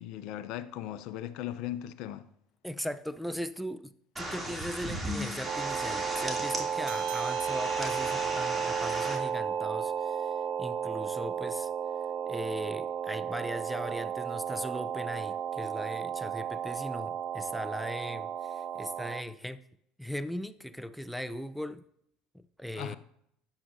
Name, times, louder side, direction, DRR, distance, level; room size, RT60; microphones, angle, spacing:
voice 1, 0.0-2.3 22.7-23.0, left 12 dB, 65° left, 0.6 m, -38 dB
voice 2, 2.6-11.7 12.3-19.6 20.0-21.8 22.3-23.0, equal, ahead, 0.5 m, -39 dB
sound 1, 4.2-9.2, right 1 dB, 15° right, 2.7 m, -37 dB
sound 2, 5.5-19.2, right 8 dB, 50° right, 0.7 m, -33 dB
sound 3, 6.8-11.7, right 6 dB, 75° right, 0.9 m, -49 dB
13.0 x 9.0 x 2.7 m
hypercardioid pair, 80°, 0 cm